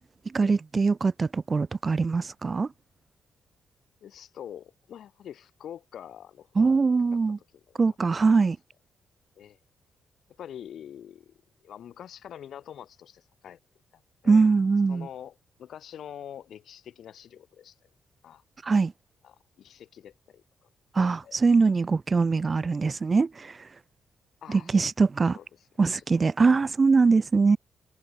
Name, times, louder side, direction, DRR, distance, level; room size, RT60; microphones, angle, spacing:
voice 1, 0.3-2.7 6.6-7.4 7.8-8.6 14.3-15.1 18.6-18.9 21.0-23.5 24.5-25.4 25.8-27.6, right 4 dB, 30° right, 0.7 m, -22 dB
voice 2, 4.0-6.7 7.5-8.0 9.4-9.6 10.4-11.3 11.6-13.6 13.9-14.5 14.9-17.9 18.2-18.4 19.2-20.7 21.2-21.4 24.4-24.8 25.3-25.7 26.0-26.1, left 9 dB, 70° left, 2.0 m, -45 dB
cardioid pair, 105°, 0 cm